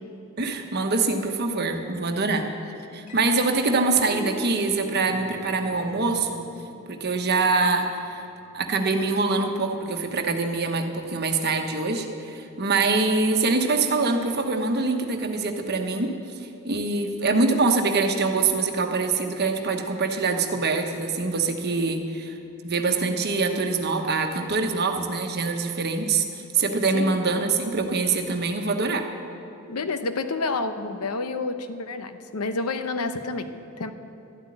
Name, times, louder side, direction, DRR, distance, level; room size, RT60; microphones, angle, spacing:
voice 1, 0.4-2.4 2.9-6.4 6.9-8.3 8.5-16.1 16.4-22.4 22.6-29.0, right 3 dB, 45° right, 5 dB, 1.1 m, -24 dB
sound 1, 3.1-9.7, equal, 35° left, 2.9 m, -43 dB
voice 2, 29.7-33.5 33.8-33.9, left 3 dB, 85° left, 9 dB, 0.9 m, -29 dB
13.0 x 8.2 x 9.9 m, 2.8 s
head